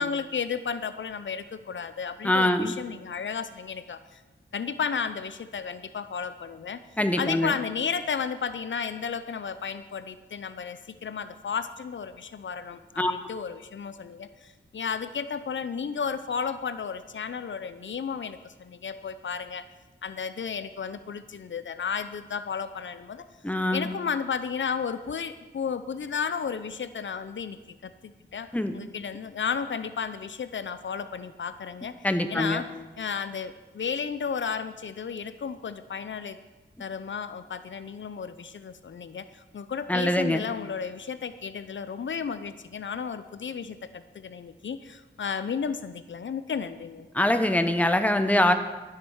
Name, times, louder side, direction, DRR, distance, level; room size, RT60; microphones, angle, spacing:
voice 1, 0.0-4.2 4.5-6.8 7.2-19.6 20.0-23.3 23.7-27.6 27.8-32.0 32.3-32.7 33.0-36.4 36.8-47.1, left 6 dB, 75° left, 12 dB, 0.6 m, -33 dB
voice 2, 2.2-2.7 7.0-7.5 13.0-13.1 23.4-23.9 28.5-28.7 32.0-32.6 39.9-40.4 47.1-48.5, left 1 dB, 5° left, 8 dB, 1.0 m, -23 dB
13.0 x 7.5 x 6.3 m, 1.2 s
wide cardioid pair, 70°, 20 cm